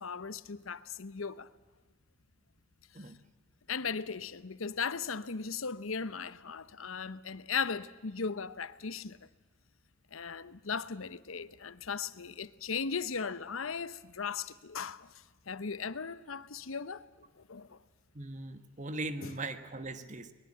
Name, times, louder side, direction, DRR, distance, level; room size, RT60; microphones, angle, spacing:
voice 1, 0.0-1.5 3.7-9.2 10.1-15.1 15.5-17.0 17.5-17.8 19.2-19.3, left 5 dB, 75° left, 0.9 m, -37 dB
voice 2, 18.1-20.3, right 2 dB, 35° right, 1.4 m, -39 dB
22.5 x 21.5 x 8.7 m
head